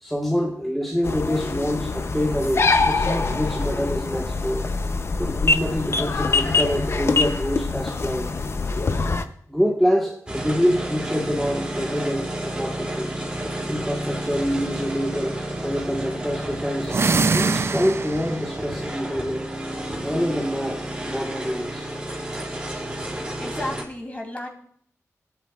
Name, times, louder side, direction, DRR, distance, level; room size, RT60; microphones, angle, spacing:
voice 1, 0.0-4.7 5.2-8.3 9.5-13.3 13.7-17.0 17.3-19.4 20.0-21.9, equal, ahead, -3 dB, 1.4 m, -26 dB
sound 1, 1.0-9.2, left 3 dB, 50° left, 0.7 m, -24 dB
sound 2, 10.3-23.8, right 1 dB, 15° right, 2.6 m, -31 dB
sound 3, 16.8-18.5, right 4 dB, 50° right, 0.5 m, -22 dB
voice 2, 23.3-24.5, left 1 dB, 25° left, 1 dB, 3.0 m, -33 dB
16.5 x 8.6 x 2.4 m, 0.62 s
wide cardioid pair, 85°, 6 cm